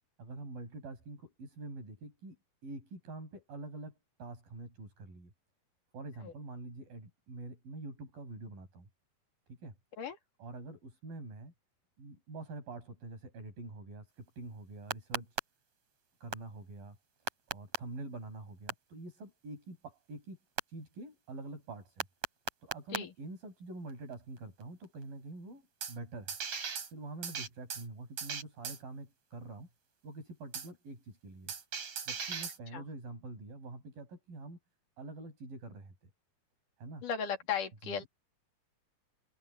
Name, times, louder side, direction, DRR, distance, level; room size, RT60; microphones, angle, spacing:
voice 1, 0.2-2.4 2.6-3.9 4.2-5.3 5.9-8.9 9.5-9.7 10.4-11.5 12.0-15.4 16.2-17.0 17.5-20.4 20.7-22.1 22.6-26.4 26.9-29.7 30.0-31.5 32.1-34.6 35.0-36.1 36.8-37.0 37.8-38.1, right 2 dB, 85° right, 9.5 m, -46 dB
sound 1, 14.9-15.4 16.3-16.4 17.3-17.8 18.7-18.8 20.6-20.7 22.0-23.0 25.8-26.0 26.3-26.9 27.2-27.9 28.2-28.8 30.5-30.7 31.5-32.6, right 6 dB, 50° right, 4.5 m, -36 dB
voice 2, 37.0-38.0, left 7 dB, 65° left, 4.3 m, -36 dB
omnidirectional pair, 4.0 m